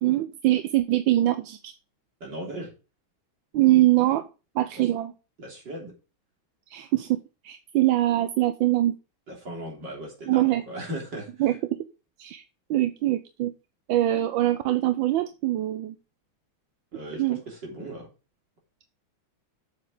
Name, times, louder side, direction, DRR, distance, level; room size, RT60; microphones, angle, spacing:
voice 1, 0.0-1.7 3.5-4.3 4.5-5.1 6.7-7.2 7.4-8.9 10.3-10.6 11.4-11.8 12.2-12.4 12.7-13.5 13.9-15.9 17.1-17.4, right 15 dB, 75° right, 9 dB, 1.3 m, -23 dB
voice 2, 2.2-2.7 4.7-4.8 5.4-5.9 9.3-11.3 16.9-18.1, right 1 dB, 55° right, -1 dB, 4.2 m, -37 dB
7.5 x 7.4 x 5.0 m, 0.32 s
omnidirectional pair, 2.3 m